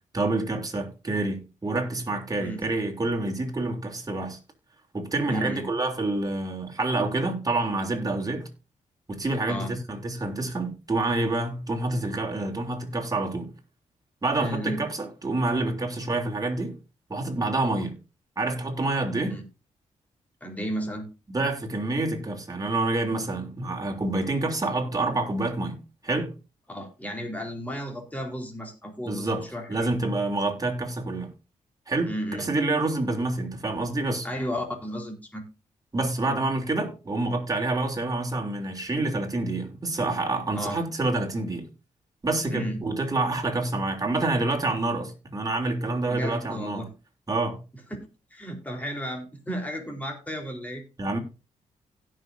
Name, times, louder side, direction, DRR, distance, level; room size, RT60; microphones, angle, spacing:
voice 1, 0.1-4.4 4.9-8.5 9.1-13.5 14.2-16.8 17.1-17.9 18.4-19.4 21.3-26.3 29.0-31.3 31.9-34.3 35.9-41.7 42.2-46.9 47.3-47.6 51.0-51.2, right 2 dB, 30° right, 3.3 m, -27 dB
voice 2, 5.3-5.6 9.5-9.7 14.4-14.8 19.3-19.4 20.4-21.1 26.7-29.9 32.0-32.5 34.2-35.4 40.5-40.8 42.5-42.9 46.1-46.9 48.3-50.8, equal, 10° left, 4.0 m, -33 dB
16.5 x 6.4 x 2.7 m
cardioid pair, 60°, 13 cm